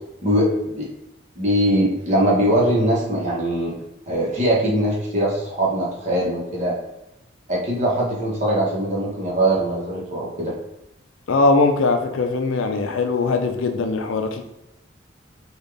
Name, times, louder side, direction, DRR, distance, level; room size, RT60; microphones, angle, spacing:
voice 1, 0.2-0.9 1.4-3.8 4.1-6.8 7.5-10.5, right 1 dB, 35° right, -5 dB, 1.0 m, -21 dB
voice 2, 11.3-14.4, left 3 dB, 85° left, 5 dB, 0.4 m, -20 dB
4.0 x 2.3 x 3.3 m, 0.87 s
head